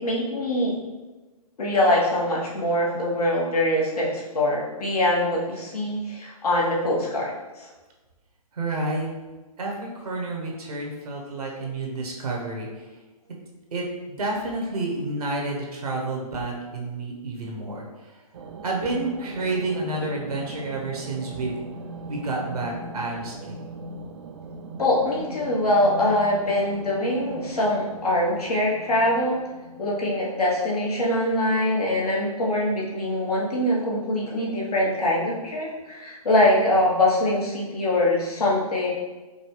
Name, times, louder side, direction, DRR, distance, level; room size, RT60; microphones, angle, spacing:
voice 1, 0.0-0.7 1.6-7.7 24.8-29.4 29.8-38.9, left 1 dB, 75° left, -4 dB, 1.3 m, -23 dB
voice 2, 8.5-9.1 9.6-12.9 13.7-18.2 18.6-21.6 22.1-23.7, right 2 dB, 75° right, -1 dB, 1.1 m, -30 dB
sound 1, 18.3-30.9, right 3 dB, 45° right, 0.4 m, -40 dB
5.2 x 2.3 x 3.2 m, 1.2 s
hypercardioid pair, 140°, 20 cm